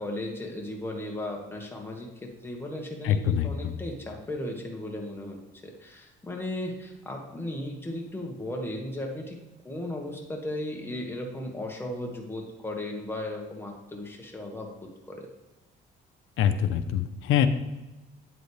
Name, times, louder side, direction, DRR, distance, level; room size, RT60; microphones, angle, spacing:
voice 1, 0.0-9.4 9.6-15.3, left 1 dB, 10° left, 0 dB, 1.7 m, -36 dB
voice 2, 3.0-3.7 16.4-17.5, left 9 dB, 85° left, 9 dB, 0.6 m, -24 dB
8.9 x 7.8 x 3.4 m, 1.0 s
cardioid pair, 90°, 20 cm